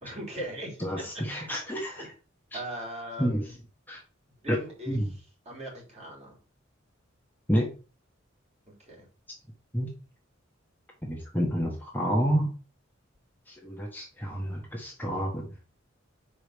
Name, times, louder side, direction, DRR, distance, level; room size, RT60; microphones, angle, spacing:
voice 1, 0.0-0.8 1.1-1.5 1.9-2.1 2.5-3.5 4.4-5.2 5.4-6.4 8.8-9.0, right 1 dB, 35° right, -3 dB, 3.4 m, -39 dB
voice 2, 0.8-2.1 2.5-2.6 3.2-3.4 3.9-4.0 4.5-4.6 4.9-5.1 7.5-7.7 9.7-9.9 11.0-12.5 13.5-15.5, equal, 10° left, -1 dB, 1.2 m, -29 dB
5.7 x 5.0 x 5.0 m, 0.36 s
head